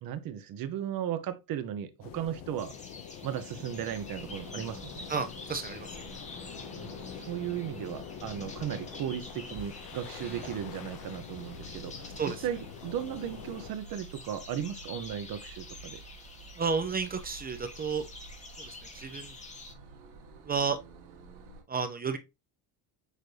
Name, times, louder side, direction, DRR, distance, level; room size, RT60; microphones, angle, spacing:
voice 1, 0.0-2.7 3.2-5.0 6.8-6.9 7.3-12.1 12.4-16.0, right 10 dB, 55° right, 0.7 m, -36 dB
sound 1, 2.0-13.7, left 8 dB, 50° left, 0.7 m, -45 dB
sound 2, 2.6-19.7, left 3 dB, 15° left, 0.7 m, -49 dB
sound 3, 3.9-21.6, right 3 dB, 80° right, 1.5 m, -51 dB
voice 2, 5.1-5.9 10.2-10.4 12.2-12.4 16.6-18.1 18.6-19.3 20.4-20.8 21.7-22.2, right 5 dB, 25° right, 0.4 m, -32 dB
6.6 x 2.6 x 3.1 m
cardioid pair, 140°, 44 cm